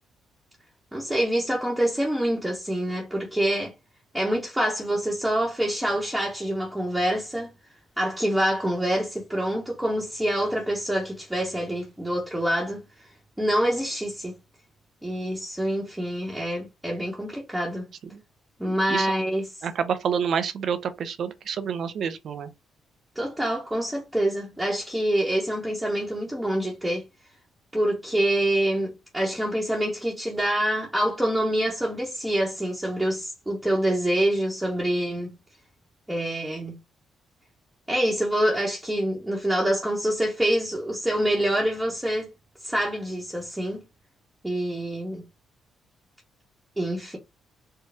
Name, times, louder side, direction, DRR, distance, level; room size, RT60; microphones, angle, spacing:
voice 1, 0.9-3.7 4.1-7.5 8.0-12.8 13.4-14.4 15.0-17.9 18.6-19.5 23.1-27.1 27.7-35.3 36.1-36.8 37.9-42.3 42.6-43.8 44.4-45.2 46.8-47.2, right 1 dB, 5° right, 1.1 m, -26 dB
voice 2, 18.6-19.1 19.6-22.5, right 7 dB, 60° right, 0.7 m, -28 dB
4.6 x 2.2 x 3.4 m
cardioid pair, 90°, 0 cm